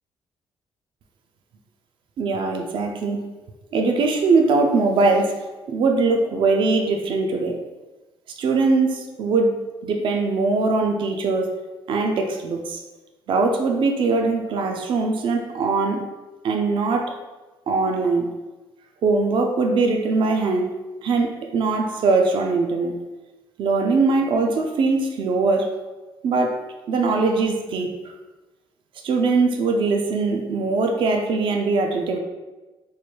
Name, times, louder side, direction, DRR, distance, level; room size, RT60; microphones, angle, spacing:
voice 1, 2.2-3.3 3.7-5.3 5.7-7.6 8.3-9.5 9.8-11.5 11.9-12.8 13.3-16.0 16.4-17.1 17.7-18.3 19.0-20.7 21.0-23.0 23.6-25.7 26.2-26.6 26.9-28.1 29.0-32.2, right 3 dB, 60° right, 3 dB, 0.4 m, -21 dB
3.1 x 2.2 x 4.3 m, 1.2 s
cardioid pair, 135°, 9 cm